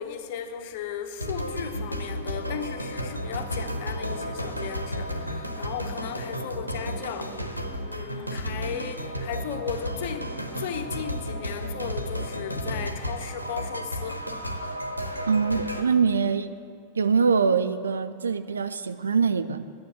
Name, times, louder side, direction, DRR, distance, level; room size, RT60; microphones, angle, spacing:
voice 1, 0.0-14.2, left 8 dB, 50° left, 7 dB, 1.0 m, -36 dB
sound 1, 1.2-15.8, equal, 90° left, 0.9 m, -33 dB
voice 2, 15.3-16.5 16.9-19.6, right 5 dB, 70° right, 11 dB, 0.5 m, -23 dB
10.5 x 9.8 x 8.1 m, 2.2 s
figure-of-eight pair, 90°, 0 cm